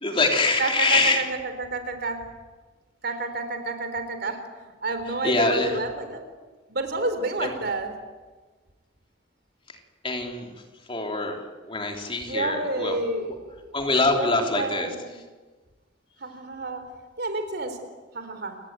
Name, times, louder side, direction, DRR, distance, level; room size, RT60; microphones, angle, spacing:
voice 1, 0.0-1.2 5.2-5.7 7.4-7.5 10.0-10.5 10.9-11.4 11.6-13.0 13.7-14.9, left 3 dB, 30° left, 2 dB, 3.5 m, -24 dB
voice 2, 0.6-2.2 3.0-6.2 6.7-7.9 12.3-13.8 14.1-15.2 16.2-16.8 17.2-17.8 18.1-18.6, right 2 dB, 60° right, 8 dB, 3.8 m, -30 dB
29.5 x 18.0 x 9.2 m, 1.3 s
head